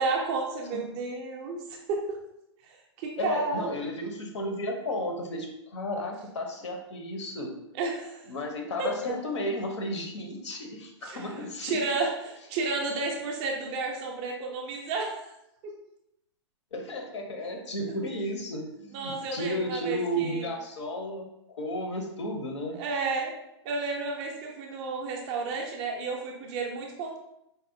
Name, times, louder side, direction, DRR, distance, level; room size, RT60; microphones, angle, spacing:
voice 1, 0.0-2.2 2.6-3.7 7.8-8.2 8.8-8.9 11.0-15.3 15.6-15.7 18.9-20.5 22.7-23.3 23.6-27.2, right 3 dB, 15° right, 0 dB, 0.3 m, -32 dB
voice 2, 3.2-7.5 8.3-11.8 16.7-21.2 21.6-22.7, left 1 dB, 75° left, 2 dB, 0.8 m, -33 dB
4.0 x 2.1 x 2.6 m, 0.83 s
hypercardioid pair, 170°, 15 cm